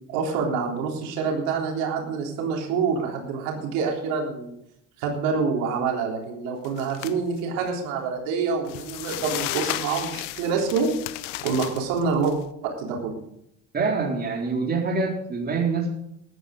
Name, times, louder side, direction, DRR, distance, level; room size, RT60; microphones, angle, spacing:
voice 1, 0.1-4.5 5.0-10.9 11.4-12.3 12.6-13.2, right 5 dB, 75° right, 0 dB, 3.7 m, -26 dB
sound 1, 6.6-7.1 7.6-7.7 8.7-12.3, left 17 dB, 85° left, 0.9 m, -34 dB
voice 2, 13.7-15.9, right 4 dB, 25° right, 0 dB, 3.8 m, -25 dB
14.5 x 11.5 x 5.1 m, 0.76 s
supercardioid pair, 100°, 36 cm